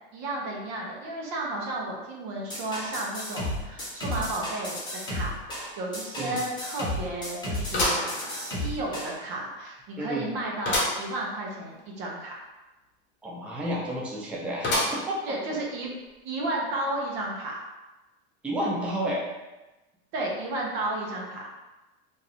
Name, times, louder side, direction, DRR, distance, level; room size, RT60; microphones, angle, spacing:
voice 1, 0.1-4.8 5.1-5.4 5.8-12.4 15.3-15.9 16.2-17.6 20.1-21.4, right 2 dB, 55° right, -2 dB, 0.9 m, -33 dB
sound 1, 2.5-9.1, left 1 dB, 15° left, 1.1 m, -33 dB
sound 2, 5.5-5.6 6.0-6.1 7.7-8.8 9.3-9.4 10.6-11.1 11.5-11.6 11.8-11.9 14.6-15.3 15.8-15.9 16.9-17.0, left 1 dB, 35° left, 1.1 m, -28 dB
voice 2, 10.0-10.3 13.2-15.2 18.4-19.3, right 1 dB, 5° right, -4 dB, 0.4 m, -31 dB
2.7 x 2.4 x 3.4 m, 1.1 s
supercardioid pair, 125°, 33 cm